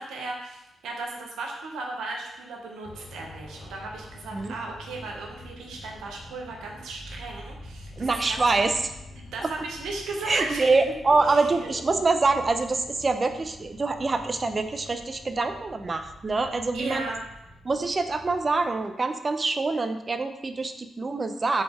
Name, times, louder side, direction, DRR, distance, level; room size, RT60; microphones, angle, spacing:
voice 1, 0.0-8.4 9.2-10.8 11.2-11.7 16.7-17.2, right 3 dB, 85° right, 0 dB, 0.6 m, -36 dB
sound 1, 2.8-18.9, left 1 dB, 40° left, 0.6 m, -46 dB
voice 2, 8.0-8.9 10.3-17.0 17.6-21.6, right 3 dB, 35° right, 7 dB, 0.4 m, -25 dB
4.2 x 2.3 x 3.4 m, 0.88 s
cardioid pair, 65°, 0 cm